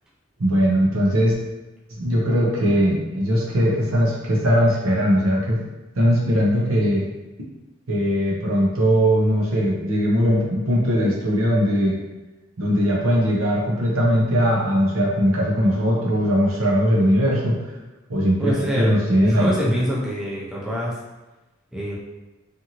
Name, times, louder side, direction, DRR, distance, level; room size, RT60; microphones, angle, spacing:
voice 1, 0.4-1.3 2.0-5.7 6.0-7.1 7.9-12.0 12.6-17.6 18.1-19.7, equal, 75° right, -3 dB, 0.7 m, -20 dB
voice 2, 18.4-18.9 19.3-21.0 21.7-22.0, equal, 5° right, -7 dB, 0.5 m, -26 dB
2.6 x 2.6 x 2.8 m, 1.1 s
head